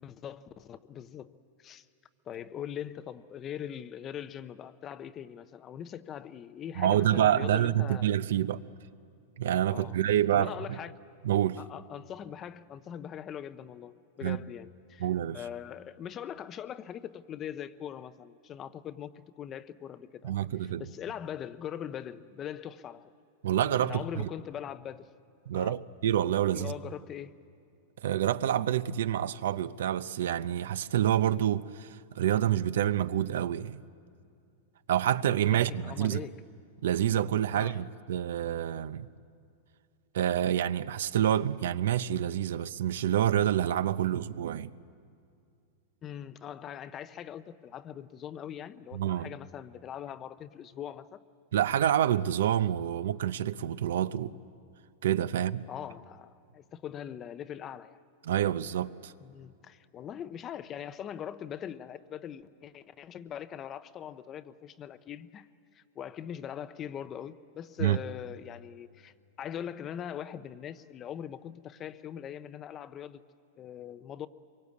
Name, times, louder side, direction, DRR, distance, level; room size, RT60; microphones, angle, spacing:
voice 1, 0.0-1.3 1.6-1.9 2.3-8.1 9.7-10.0 10.3-10.9 11.6-15.1 15.3-23.1 23.8-25.1 25.5-25.8 26.5-27.4 35.5-36.4 37.5-37.8 46.0-51.2 55.7-58.0 59.2-73.2 73.6-74.3, left 9 dB, 20° left, 0.5 m, -41 dB
voice 2, 6.8-8.6 9.4-10.5 11.2-11.6 14.2-14.4 15.0-15.4 20.2-20.9 23.4-24.0 25.5-26.7 28.0-33.8 34.9-36.2 36.8-39.1 40.1-44.7 48.9-49.3 51.5-54.4 55.0-55.6 58.2-59.1 67.8-68.0, right 11 dB, 75° right, 0.6 m, -27 dB
25.0 x 23.0 x 8.4 m
supercardioid pair, 170°, 0 cm